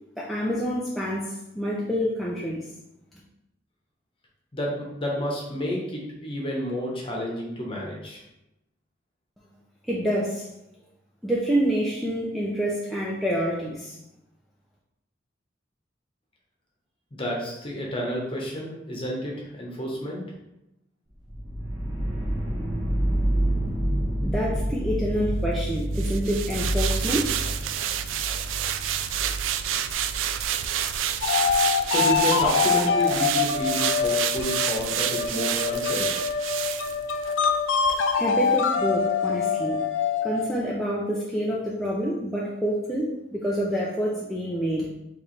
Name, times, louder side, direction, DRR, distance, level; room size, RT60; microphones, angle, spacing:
voice 1, 0.2-2.7 9.9-10.5 11.2-14.0 24.2-27.4 38.2-39.8 40.2-44.9, equal, ahead, -6 dB, 0.5 m, -27 dB
voice 2, 4.5-8.2 17.1-20.2 31.6-36.1, equal, 30° left, -2 dB, 1.1 m, -30 dB
sound 1, 21.3-31.2, right 1 dB, 20° right, 1.0 m, -28 dB
sound 2, 25.9-37.5 37.9-38.0, right 10 dB, 85° right, 0.3 m, -29 dB
sound 3, 31.2-40.7, left 6 dB, 80° left, 0.4 m, -25 dB
4.5 x 3.2 x 3.3 m, 0.89 s
head